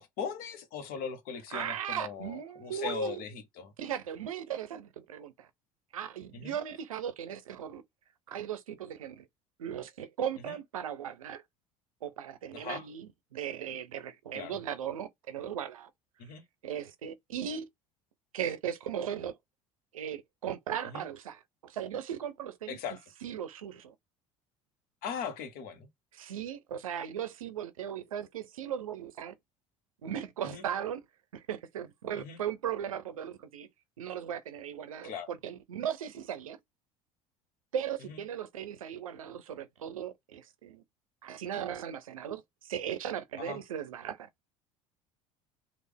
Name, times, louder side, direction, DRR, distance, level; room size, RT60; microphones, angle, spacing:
voice 1, 0.0-3.7 6.3-6.6 10.5-10.6 12.5-12.9 14.3-14.6 16.2-16.4 20.9-21.0 22.7-23.0 25.0-25.9 30.4-30.6 32.2-32.4 35.0-35.3 38.0-38.2 43.4-43.6, left 6 dB, 60° left, 1.1 m, -39 dB
voice 2, 1.5-3.2 3.8-5.5 5.9-7.8 8.3-9.3 9.6-11.4 12.0-15.9 16.6-17.6 18.3-19.4 19.9-22.8 23.2-23.9 26.1-29.3 30.0-31.0 31.3-33.7 34.0-36.6 37.7-40.8 41.2-44.3, right 9 dB, 85° right, 0.5 m, -37 dB
3.3 x 2.5 x 3.4 m
hypercardioid pair, 70°, 17 cm